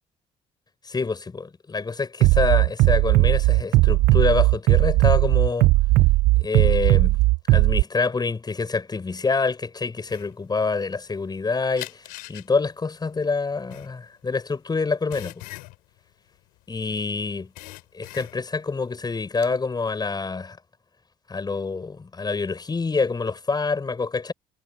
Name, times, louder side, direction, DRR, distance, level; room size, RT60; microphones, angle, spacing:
voice 1, 0.8-5.7 6.4-7.2 7.5-15.4 16.7-17.5 17.9-20.6 21.3-24.3, left 4 dB, 30° left, 5.8 m, -26 dB
Bass drum, 2.2-7.8, right 20 dB, 75° right, 0.6 m, -17 dB
sound 1, 10.1-11.4 11.8-17.0 17.3-18.7 19.0-19.5, left 22 dB, 80° left, 4.7 m, -41 dB
supercardioid pair, 70°, 15 cm